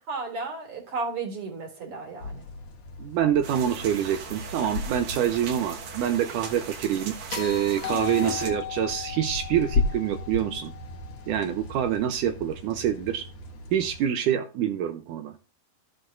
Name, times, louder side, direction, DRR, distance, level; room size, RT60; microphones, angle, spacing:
voice 1, 0.1-2.5 7.9-8.4, right 3 dB, 45° right, 2.6 m, -34 dB
sound 1, 2.2-14.1, left 3 dB, 60° left, 3.4 m, -36 dB
voice 2, 3.0-10.7 11.3-13.2 13.7-15.3, right 10 dB, 80° right, 2.0 m, -26 dB
sound 2, 3.4-8.5, right 6 dB, 60° right, 2.4 m, -39 dB
sound 3, 7.3-11.6 13.8-13.9, left 13 dB, 80° left, 1.8 m, -37 dB
14.0 x 7.9 x 2.5 m
omnidirectional pair, 4.1 m